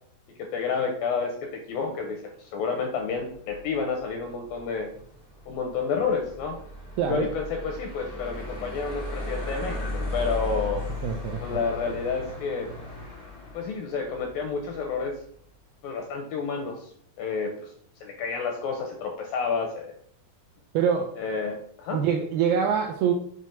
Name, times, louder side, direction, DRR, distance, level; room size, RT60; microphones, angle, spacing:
voice 1, 0.4-4.9 5.5-6.6 7.1-10.9 11.4-12.7 13.5-15.1 15.8-16.9 17.2-17.7 18.0-20.0 21.2-22.0, left 5 dB, 85° left, 3 dB, 2.1 m, -30 dB
sound 1, 3.2-15.2, left 2 dB, 25° left, 0.7 m, -37 dB
voice 2, 7.0-7.3 11.0-11.4 20.7-21.1 21.9-23.1, right 7 dB, 85° right, 3 dB, 2.1 m, -24 dB
6.8 x 3.1 x 5.6 m, 0.63 s
omnidirectional pair, 4.8 m